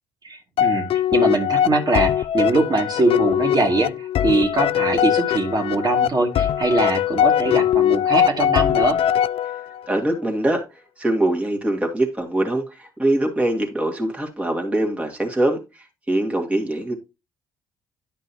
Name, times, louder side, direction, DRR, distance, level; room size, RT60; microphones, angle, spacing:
voice 1, 0.2-9.0, right 2 dB, 40° right, 1 dB, 2.4 m, -22 dB
sound 1, 0.6-9.9, left 10 dB, 60° left, 0.4 m, -21 dB
voice 2, 9.9-10.6 11.0-15.6 16.1-16.9, right 1 dB, 10° right, 1 dB, 2.1 m, -22 dB
10.5 x 5.3 x 2.9 m, 0.26 s
hypercardioid pair, 55°, 11 cm